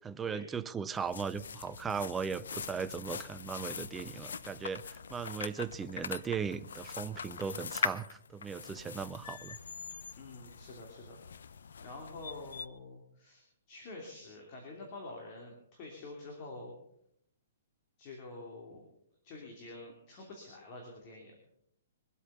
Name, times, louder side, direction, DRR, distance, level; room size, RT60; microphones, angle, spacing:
voice 1, 0.0-9.6, right 6 dB, 10° right, 0.4 m, -38 dB
sound 1, 0.9-12.7, left 6 dB, 80° left, 0.7 m, -42 dB
voice 2, 10.2-11.2 11.8-13.4 13.7-16.7 18.0-18.9 19.2-21.3, left 2 dB, 30° left, 3.0 m, -47 dB
22.5 x 8.3 x 5.6 m
hypercardioid pair, 160°, 0 cm